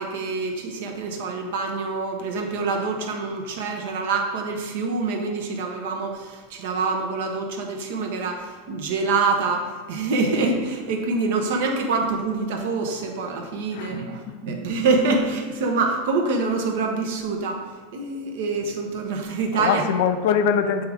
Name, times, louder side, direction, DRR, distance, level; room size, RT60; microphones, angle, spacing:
voice 1, 0.0-17.6 17.9-19.8, right 3 dB, 65° right, 3 dB, 1.0 m, -25 dB
voice 2, 13.7-14.3 19.5-20.9, left 7 dB, 60° left, 9 dB, 0.4 m, -23 dB
7.6 x 3.5 x 3.5 m, 1.5 s
supercardioid pair, 165°, 0 cm